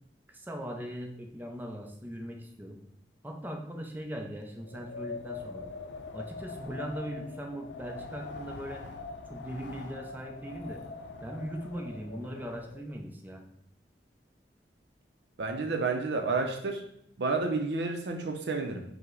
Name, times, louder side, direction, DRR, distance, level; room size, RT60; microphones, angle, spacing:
voice 1, 0.3-2.8 3.2-5.7 6.1-8.9 9.3-10.8 11.2-13.4, equal, 10° right, 2 dB, 0.5 m, -39 dB
Wind, 4.5-13.0, left 4 dB, 75° left, 0.5 m, -43 dB
voice 2, 15.4-16.8 17.2-18.8, right 3 dB, 70° right, 4 dB, 0.5 m, -30 dB
5.6 x 2.1 x 3.7 m, 0.71 s
head